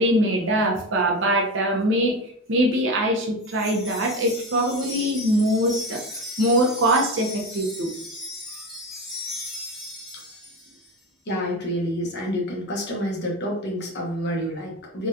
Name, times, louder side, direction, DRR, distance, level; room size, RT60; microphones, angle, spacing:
voice 1, 0.0-2.2 2.5-6.0 6.4-7.9, right 1 dB, 60° right, 2 dB, 0.6 m, -22 dB
Wind chime, 3.4-10.9, left 2 dB, ahead, 0.9 m, -37 dB
voice 2, 11.3-15.1, equal, 55° left, -1 dB, 0.9 m, -28 dB
3.5 x 2.3 x 2.7 m, 0.62 s
head